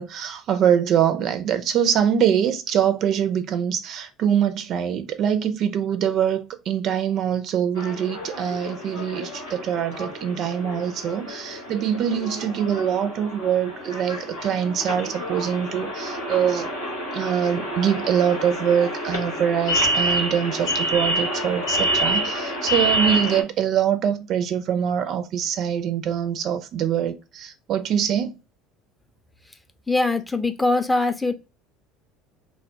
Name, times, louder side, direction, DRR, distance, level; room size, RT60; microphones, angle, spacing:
voice 1, 0.0-16.7 17.1-28.3, right 9 dB, 50° right, 0.4 m, -24 dB
sound 1, 7.8-23.4, equal, 90° left, 1.0 m, -28 dB
voice 2, 29.9-31.3, left 2 dB, 10° left, 0.4 m, -22 dB
2.2 x 2.0 x 3.7 m
figure-of-eight pair, 65°, 0 cm